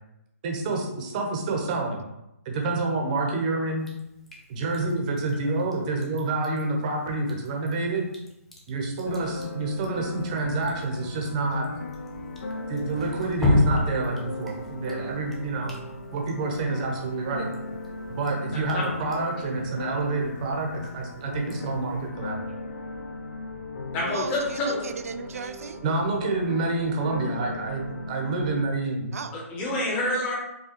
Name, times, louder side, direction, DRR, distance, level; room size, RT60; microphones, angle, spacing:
voice 1, 0.4-2.0 2.4-3.9 4.5-8.1 8.7-11.7 12.7-15.7 16.1-17.5 18.2-22.4 25.8-29.2, right 3 dB, 30° right, 1 dB, 0.8 m, -28 dB
Drip, 3.8-22.1, left 1 dB, 5° left, 0.4 m, -35 dB
sound 1, 9.1-28.7, left 2 dB, 65° left, 0.5 m, -37 dB
voice 2, 18.5-18.9 23.9-24.8 29.3-30.3, left 1 dB, 20° left, -3 dB, 0.9 m, -28 dB
voice 3, 24.1-25.8 29.1-29.4, right 5 dB, 70° right, 9 dB, 0.4 m, -36 dB
4.7 x 2.3 x 3.0 m, 0.87 s
hypercardioid pair, 155°, 8 cm